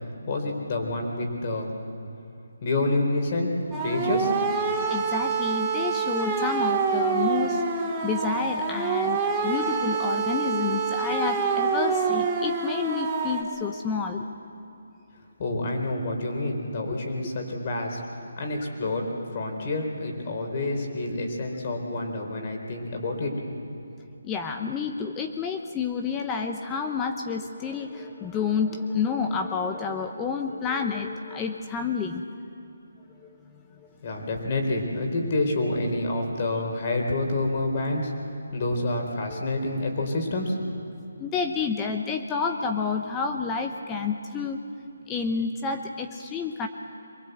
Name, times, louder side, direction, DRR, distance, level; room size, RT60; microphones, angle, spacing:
voice 1, 0.3-1.7 2.6-3.5 3.8-4.3 15.4-18.0 18.4-23.3 34.0-38.1 38.5-40.6, left 2 dB, 40° left, 2 dB, 4.1 m, -28 dB
sound 1, 3.7-13.4, right 5 dB, 15° right, 2.1 m, -26 dB
voice 2, 4.7-7.6 8.0-14.3 24.2-32.2 33.2-33.3 33.8-33.9 39.3-39.6 41.2-44.6 45.1-46.7, left 5 dB, 15° left, 4 dB, 0.9 m, -29 dB
23.0 x 20.5 x 8.0 m, 2.7 s
hypercardioid pair, 160°, 0 cm